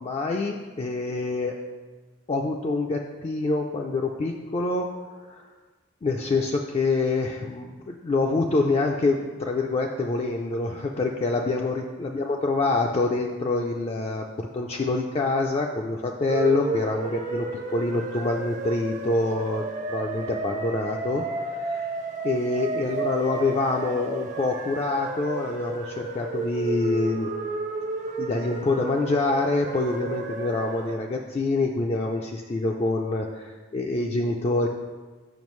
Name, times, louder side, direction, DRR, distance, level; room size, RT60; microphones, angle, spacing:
voice 1, 0.0-1.5 2.3-4.9 5.3-5.4 6.0-17.5 17.7-19.6 19.9-21.9 22.2-27.3 28.2-34.7, left 3 dB, 30° left, 1 dB, 0.3 m, -26 dB
sound 1, 16.3-31.0, right 3 dB, 40° right, 0.6 m, -32 dB
7.0 x 5.7 x 3.1 m, 1.3 s
head